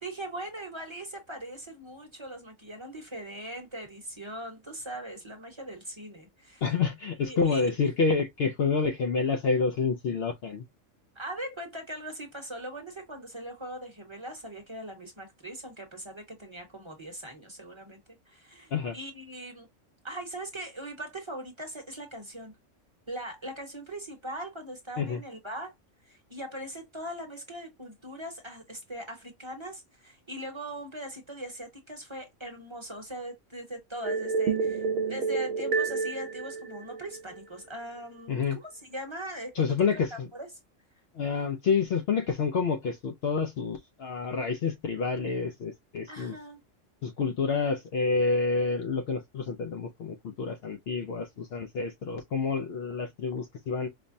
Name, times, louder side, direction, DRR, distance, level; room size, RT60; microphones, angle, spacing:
voice 1, 0.0-6.6 7.2-7.7 11.1-18.0 18.3-19.7 20.0-22.5 23.1-25.7 26.1-40.5 46.1-46.6, right 1 dB, 25° right, 0.9 m, -40 dB
voice 2, 6.6-10.6 18.7-19.0 25.0-25.2 38.3-38.6 39.6-40.3 41.1-46.4 47.0-53.9, left 5 dB, 65° left, 0.7 m, -28 dB
sound 1, 34.0-37.4, right 5 dB, 60° right, 0.7 m, -29 dB
5.2 x 2.1 x 2.6 m
omnidirectional pair, 1.3 m